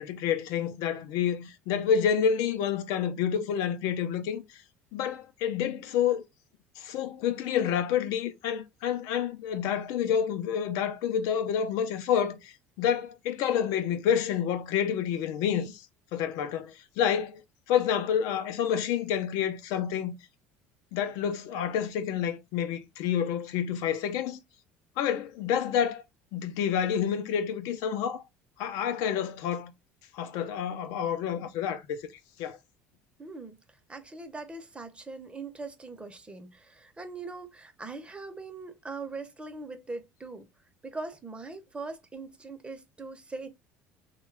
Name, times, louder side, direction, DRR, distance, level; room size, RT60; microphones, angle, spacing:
voice 1, 0.0-4.4 4.9-6.2 6.8-15.8 16.1-17.4 17.7-20.1 20.9-24.4 25.0-26.0 26.3-28.2 28.6-29.7 30.1-32.0 32.4-32.6, left 8 dB, 70° left, 0.6 m, -28 dB
voice 2, 33.2-33.5 33.9-40.5 40.8-43.5, right 3 dB, 15° right, 0.8 m, -41 dB
3.0 x 2.3 x 3.2 m
hypercardioid pair, 75°, 6 cm